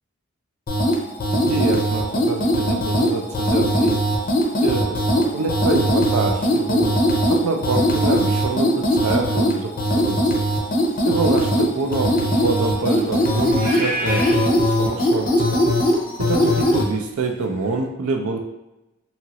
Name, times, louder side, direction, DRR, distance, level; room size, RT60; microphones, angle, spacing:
sound 1, 0.7-16.9, equal, 40° left, 0.5 m, -20 dB
voice 1, 1.3-4.0 4.6-6.9 7.3-10.4 11.1-15.6 16.2-18.4, right 3 dB, 75° right, 3 dB, 0.4 m, -26 dB
sound 2, 11.0-17.8, equal, 5° right, 0.6 m, -34 dB
2.8 x 2.4 x 2.9 m, 0.93 s
head